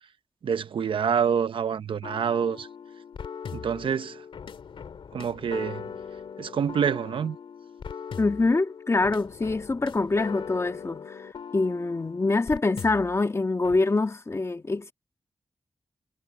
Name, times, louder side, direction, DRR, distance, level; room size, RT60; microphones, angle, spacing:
voice 1, 0.4-2.7 3.5-4.2 5.1-5.8 6.4-7.4, right 7 dB, 90° right, 0.9 m, -27 dB
sound 1, 2.0-13.2 13.6-13.8, left 6 dB, 90° left, 2.6 m, -40 dB
voice 2, 8.2-14.9, left 3 dB, 30° left, 1.7 m, -25 dB
wide cardioid pair, 95°, 9 cm